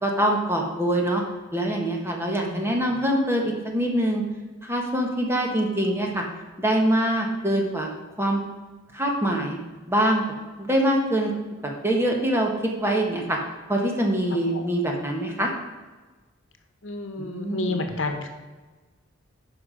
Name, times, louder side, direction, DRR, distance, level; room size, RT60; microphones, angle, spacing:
voice 1, 0.0-1.2 1.5-4.2 4.6-6.2 6.6-7.9 8.2-8.4 8.9-9.6 9.9-10.2 10.6-11.3 11.8-13.4 13.7-15.5 17.2-17.8, right 1 dB, 10° right, 0 dB, 1.3 m, -24 dB
voice 2, 2.2-2.7 14.5-14.6 16.8-18.3, left 2 dB, 70° left, 6 dB, 1.1 m, -31 dB
10.0 x 5.8 x 5.1 m, 1.3 s
head